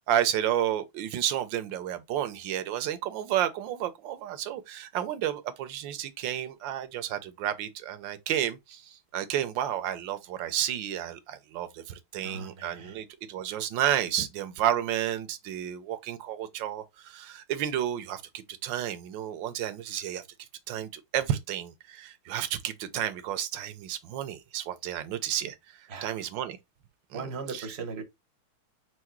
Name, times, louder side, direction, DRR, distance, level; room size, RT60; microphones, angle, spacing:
voice 1, 0.0-20.2 20.7-26.6 27.1-27.7, right 11 dB, 70° right, 1.3 m, -31 dB
voice 2, 12.2-13.0 25.9-26.1 27.1-28.0, right 4 dB, 45° right, 0.9 m, -38 dB
4.8 x 2.3 x 4.5 m
omnidirectional pair, 2.3 m